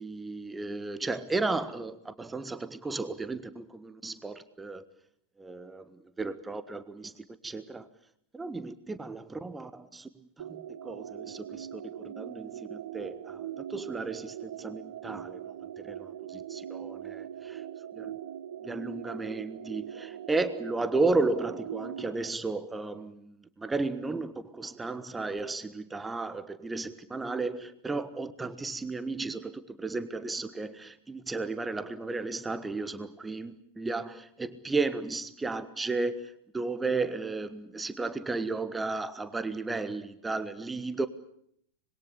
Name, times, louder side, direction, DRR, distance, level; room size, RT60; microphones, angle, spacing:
voice 1, 0.0-4.8 5.4-7.9 8.3-10.1 10.5-10.6 10.8-17.6 17.9-18.2 18.6-41.1, right 3 dB, 10° right, 1.3 m, -34 dB
sound 1, 10.4-22.3, right 10 dB, 60° right, 1.0 m, -41 dB
26.0 x 21.5 x 8.4 m
figure-of-eight pair, 90°, 0 cm